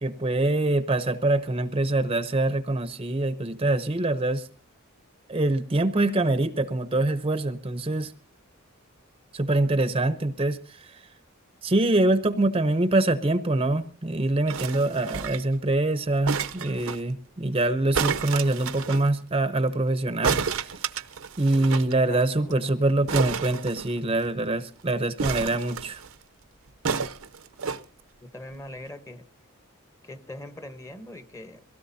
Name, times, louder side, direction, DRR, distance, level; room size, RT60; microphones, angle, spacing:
voice 1, 0.0-4.5 5.3-8.1 9.3-11.0 11.6-20.8 21.4-26.0, right 2 dB, 25° right, 0.7 m, -24 dB
sound 1, 14.5-15.6 16.3-17.0 17.9-19.0 20.2-21.9 22.2-22.3 22.5-22.7 23.1-24.3 25.2-26.1 26.8-27.8 28.5-28.6, right 6 dB, 75° right, 0.7 m, -30 dB
voice 2, 22.0-22.8 28.2-29.2 30.0-31.6, left 1 dB, 15° left, 1.0 m, -41 dB
22.5 x 17.0 x 2.7 m
head